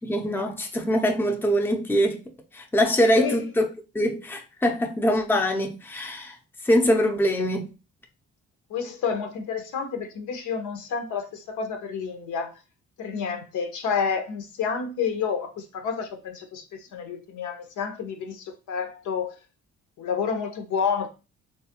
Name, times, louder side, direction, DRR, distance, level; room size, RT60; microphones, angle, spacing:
voice 1, 0.0-2.2 2.5-3.7 3.9-6.4 6.6-7.7, equal, 5° left, 0.5 m, -23 dB
voice 2, 8.7-12.5 13.0-19.3 20.0-21.1, left 6 dB, 75° left, 0.7 m, -29 dB
3.3 x 2.3 x 2.8 m
cardioid pair, 90°, 30 cm